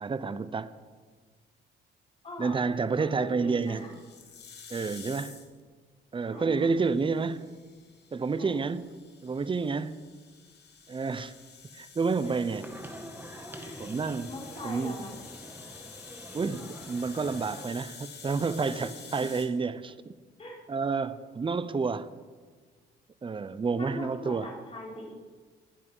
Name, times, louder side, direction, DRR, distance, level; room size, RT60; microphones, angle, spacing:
voice 1, 0.0-0.7 2.4-3.8 4.7-5.4 6.1-7.5 8.1-8.9 9.2-10.0 10.9-11.3 11.7-12.6 13.8-14.3 14.6-15.0 16.3-20.1 20.7-22.1 23.2-24.5, right 4 dB, 25° right, 14 dB, 0.7 m, -29 dB
voice 2, 2.2-2.6 3.0-3.9 6.3-6.7 8.3-8.7 12.2-12.3 13.5-13.8 14.3-15.2 18.6-18.7 20.4-20.6 23.7-25.1, left 2 dB, 30° left, -3 dB, 5.2 m, -41 dB
sound 1, 3.6-5.6 6.7-19.5, left 6 dB, 55° left, 2.4 m, -49 dB
sound 2, 12.2-17.7, right 1 dB, 10° right, 1.9 m, -46 dB
21.0 x 7.5 x 5.6 m, 1.5 s
cardioid pair, 90°, 20 cm